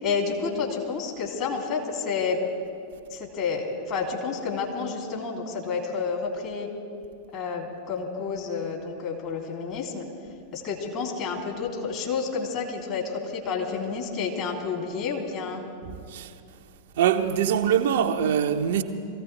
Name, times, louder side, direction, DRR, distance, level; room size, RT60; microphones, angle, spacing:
voice 1, 0.0-2.4 3.1-6.7 7.3-10.0 10.5-15.6, left 5 dB, 40° left, 2.9 m, -30 dB
voice 2, 15.8-16.3 17.0-18.8, right 9 dB, 55° right, 0.8 m, -23 dB
23.0 x 15.5 x 3.3 m
figure-of-eight pair, 90°, 0 cm